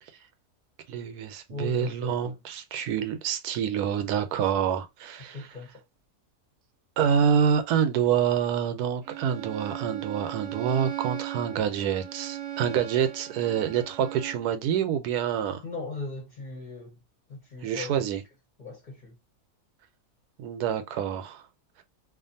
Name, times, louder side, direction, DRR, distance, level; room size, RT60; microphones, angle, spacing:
voice 1, 0.9-5.6 7.0-15.6 17.6-18.2 20.4-21.5, right 8 dB, 80° right, 1.1 m, -27 dB
voice 2, 1.5-2.3 5.3-5.7 15.6-17.0 17.3-18.1 18.6-19.1, left 2 dB, 40° left, 0.7 m, -38 dB
Bowed string instrument, 9.0-14.5, right 12 dB, 65° right, 0.8 m, -38 dB
2.5 x 2.4 x 2.6 m
omnidirectional pair, 1.6 m